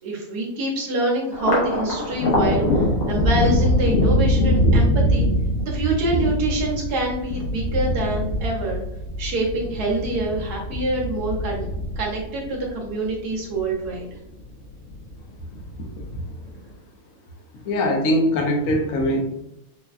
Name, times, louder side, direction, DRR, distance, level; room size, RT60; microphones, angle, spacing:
voice 1, 0.0-5.3 5.7-8.8 9.2-11.7 12.0-14.1, right 2 dB, 65° right, -2 dB, 1.1 m, -26 dB
Thunder, 1.3-14.0 14.4-15.2 15.5-16.4, left 1 dB, 85° left, 1.6 m, -23 dB
voice 2, 17.6-19.2, left 1 dB, 65° left, 1 dB, 0.8 m, -21 dB
4.1 x 2.1 x 2.4 m, 0.82 s
omnidirectional pair, 2.1 m